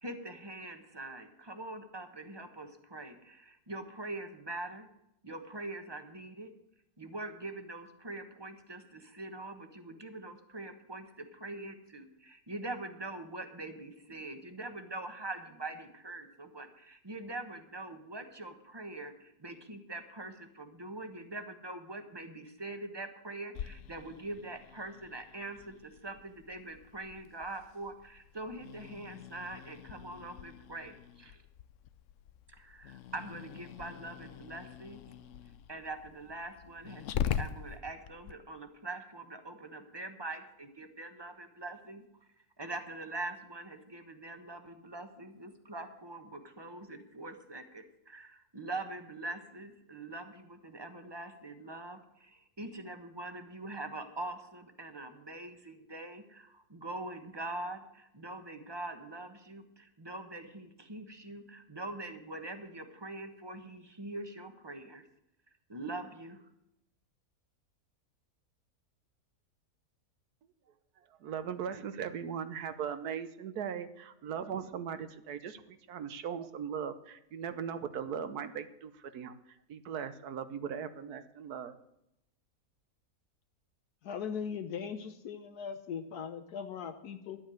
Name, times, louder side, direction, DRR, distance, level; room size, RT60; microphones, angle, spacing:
voice 1, 0.0-4.9 5.2-6.5 7.0-31.4 32.6-35.0 35.7-42.0 42.6-65.0 65.7-66.4, right 2 dB, 20° right, 7 dB, 1.1 m, -43 dB
Growling, 23.5-38.3, left 9 dB, 65° left, 0.9 m, -43 dB
voice 2, 70.7-81.8, right 7 dB, 75° right, 11 dB, 1.4 m, -39 dB
voice 3, 84.0-87.4, left 7 dB, 80° left, 7 dB, 1.4 m, -39 dB
11.5 x 8.5 x 7.7 m, 0.81 s
omnidirectional pair, 1.6 m